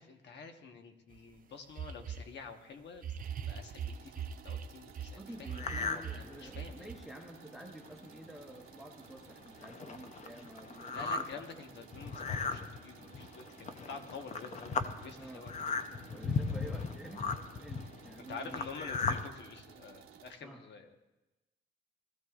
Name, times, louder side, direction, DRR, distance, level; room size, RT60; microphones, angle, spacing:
voice 1, 0.0-3.1 3.5-6.9 10.9-15.5 18.3-21.1, left 5 dB, 60° left, 5 dB, 1.2 m, -48 dB
sound 1, 1.1-1.2 1.8-2.3 3.0-5.1 5.4-6.9, right 8 dB, 45° right, 0.7 m, -40 dB
sound 2, 3.2-20.3, right 8 dB, 85° right, 1.2 m, -56 dB
voice 2, 5.2-11.5 15.2-15.4 16.1-17.3 17.6-18.6 20.4-20.6, right 1 dB, ahead, 2 dB, 0.9 m, -49 dB
sound 3, 5.5-6.1 6.5-6.6 7.3-7.4 7.6-7.9 8.6-8.7 9.0-19.3, left 5 dB, 35° left, 0.6 m, -37 dB
19.0 x 14.0 x 2.4 m, 1.0 s
cardioid pair, 135°, 20 cm